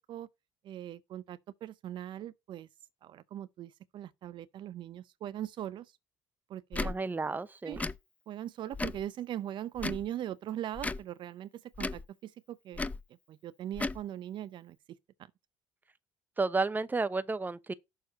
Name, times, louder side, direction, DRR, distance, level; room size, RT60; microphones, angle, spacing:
voice 1, 0.6-2.7 3.0-5.9 6.5-6.9 7.6-7.8 8.3-12.8 13.3-15.3, right 11 dB, 60° right, 0.6 m, -40 dB
Tick / Tick-tock, 6.7-6.9 7.7-8.0 8.7-9.0 9.8-10.1 10.8-11.0 11.7-12.0 12.7-13.0 13.7-14.0, left 3 dB, 15° left, 0.6 m, -35 dB
voice 2, 6.8-7.8 16.4-17.7, right 3 dB, 20° right, 0.8 m, -32 dB
6.7 x 4.4 x 5.7 m
supercardioid pair, 70°, 9 cm